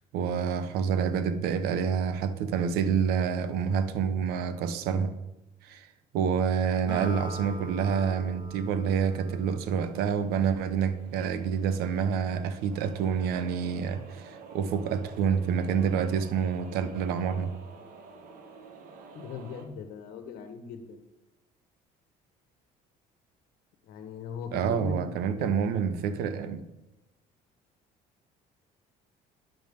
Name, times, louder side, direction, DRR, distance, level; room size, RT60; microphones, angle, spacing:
voice 1, 0.0-5.1 5.6-5.9 6.1-17.5 24.5-26.6, right 7 dB, 80° right, 1.0 m, -28 dB
Acoustic guitar, 6.9-10.5, right 1 dB, 30° right, 1.6 m, -43 dB
sound 1, 7.5-19.7, right 4 dB, 60° right, 1.7 m, -50 dB
voice 2, 19.1-21.0 23.9-25.1 25.4-25.5, left 5 dB, 80° left, 1.3 m, -39 dB
11.0 x 5.9 x 5.4 m
cardioid pair, 135°, 16 cm